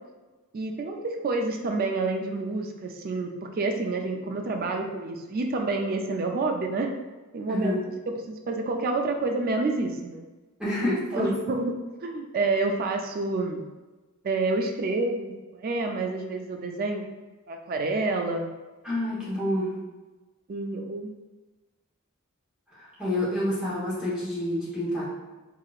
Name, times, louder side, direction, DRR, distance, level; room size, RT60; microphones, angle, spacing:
voice 1, 0.5-6.9 7.3-7.8 8.1-10.2 11.1-11.8 12.0-13.6 14.2-17.0 17.5-18.5 20.5-21.2, right 3 dB, 45° right, 3 dB, 0.4 m, -28 dB
voice 2, 7.5-7.8 10.6-11.3 18.8-19.7 22.7-25.1, left 1 dB, 5° right, -10 dB, 1.1 m, -28 dB
4.8 x 2.8 x 2.4 m, 1.2 s
head